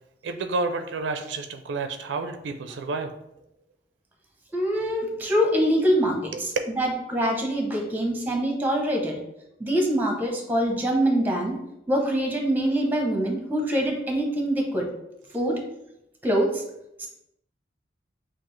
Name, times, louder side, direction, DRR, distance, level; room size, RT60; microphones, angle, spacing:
voice 1, 0.2-3.2, right 3 dB, 85° right, 7 dB, 0.4 m, -30 dB
voice 2, 4.5-6.3 6.8-9.2 9.6-11.6 11.9-14.9 15.3-15.6 16.2-16.6 17.0-17.1, equal, 10° right, 1 dB, 0.7 m, -24 dB
5.8 x 2.4 x 3.1 m, 0.85 s
head